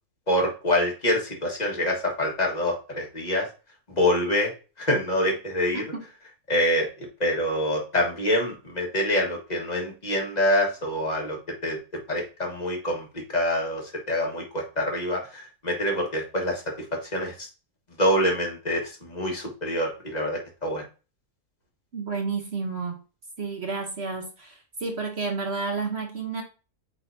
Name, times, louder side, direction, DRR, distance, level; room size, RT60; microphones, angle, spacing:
voice 1, 0.3-3.5 3.9-4.5 4.8-5.8 6.5-11.8 12.1-16.6 16.9-17.5 18.0-20.8, left 1 dB, 25° left, 0 dB, 1.7 m, -26 dB
voice 2, 21.9-23.0 23.4-26.4, right 4 dB, 45° right, 3 dB, 1.1 m, -31 dB
8.9 x 3.9 x 2.7 m, 0.33 s
omnidirectional pair, 1.7 m